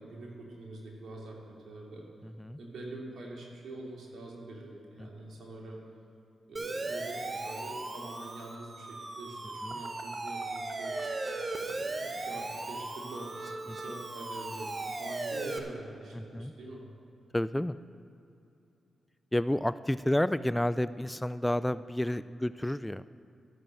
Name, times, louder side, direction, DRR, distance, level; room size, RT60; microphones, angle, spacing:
voice 1, 0.0-2.0 2.6-5.8 6.5-10.9 11.6-16.8, right 2 dB, 70° right, -2 dB, 2.7 m, -45 dB
Siren, 6.6-15.6, right 2 dB, 45° right, 1.2 m, -37 dB
voice 2, 16.1-16.5 17.3-17.8 19.3-23.0, left 1 dB, 10° left, 15 dB, 0.3 m, -30 dB
12.5 x 6.8 x 7.6 m, 2.7 s
supercardioid pair, 45°, 0 cm